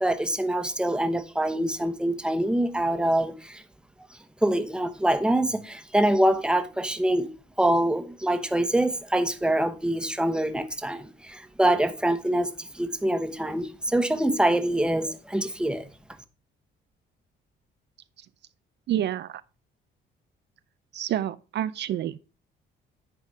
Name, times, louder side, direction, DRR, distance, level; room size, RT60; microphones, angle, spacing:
voice 1, 0.0-3.6 4.4-7.3 7.6-15.9, right 1 dB, 5° right, 0.9 m, -25 dB
voice 2, 18.9-19.4 20.9-22.2, right 11 dB, 60° right, 0.4 m, -28 dB
9.9 x 4.1 x 4.6 m
cardioid pair, 90°, 20 cm